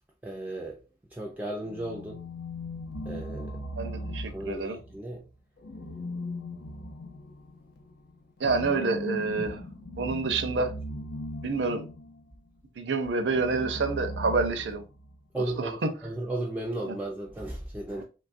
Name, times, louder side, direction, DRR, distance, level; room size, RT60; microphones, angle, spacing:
voice 1, 0.2-0.8 1.1-2.2 3.1-3.6 4.3-5.2 15.3-18.0, right 1 dB, 10° right, 0.3 m, -35 dB
sound 1, 1.6-5.0 5.6-12.2 13.2-15.2, left 1 dB, 65° left, 0.5 m, -38 dB
voice 2, 3.8-4.8 8.4-9.6 10.0-10.7 11.4-11.9 12.8-14.8 15.4-16.0 16.8-17.0, right 4 dB, 80° right, 0.5 m, -28 dB
3.2 x 2.3 x 2.5 m
head